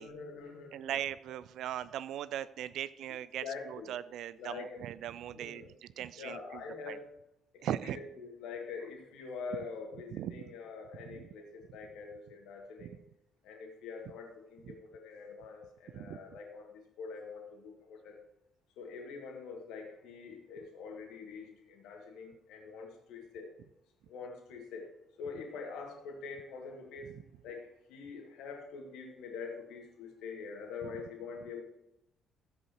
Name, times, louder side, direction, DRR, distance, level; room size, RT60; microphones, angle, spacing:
voice 1, 0.0-1.0 3.4-3.9 4.4-4.8 5.3-5.7 6.2-7.1 7.5-13.0 13.4-18.2 18.8-23.5 24.1-24.9 25.2-27.2 27.4-31.6, left 5 dB, 60° left, 2 dB, 2.0 m, -45 dB
voice 2, 0.7-7.0 7.6-8.0 10.1-10.3 11.1-11.2 12.8-12.9 14.6-14.7 15.9-16.2 27.1-27.2 30.8-30.9, right 11 dB, 55° right, 17 dB, 0.4 m, -39 dB
13.5 x 8.0 x 3.0 m, 0.84 s
figure-of-eight pair, 45°, 0 cm